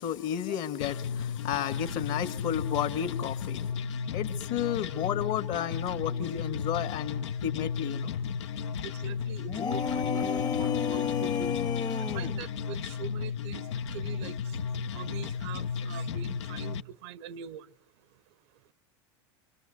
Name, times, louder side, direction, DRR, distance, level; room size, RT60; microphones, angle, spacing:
voice 1, 0.0-3.7 4.1-8.1, left 10 dB, 60° left, 2.0 m, -32 dB
sound 1, 0.8-16.8, left 6 dB, 80° left, 1.0 m, -34 dB
voice 2, 8.8-11.5 12.1-13.7 13.9-14.4 14.9-17.7, right 9 dB, 70° right, 1.0 m, -42 dB
sound 2, 9.5-12.4, left 8 dB, 25° left, 1.0 m, -31 dB
27.0 x 25.5 x 7.9 m
hypercardioid pair, 100°, 15 cm